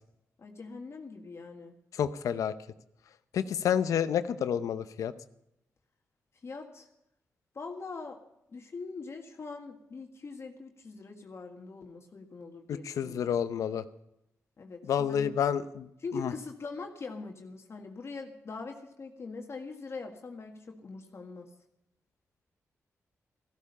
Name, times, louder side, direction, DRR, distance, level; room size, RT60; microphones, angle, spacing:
voice 1, 0.4-1.7 6.4-6.9 7.5-8.2 8.5-13.4 14.6-15.3 16.0-21.5, left 4 dB, 55° left, 3 dB, 1.7 m, -42 dB
voice 2, 1.9-2.5 3.3-5.1 12.7-13.8 14.9-15.9 16.1-16.3, left 8 dB, 90° left, 13 dB, 0.7 m, -29 dB
14.5 x 13.5 x 5.5 m, 0.82 s
cardioid pair, 65°, 5 cm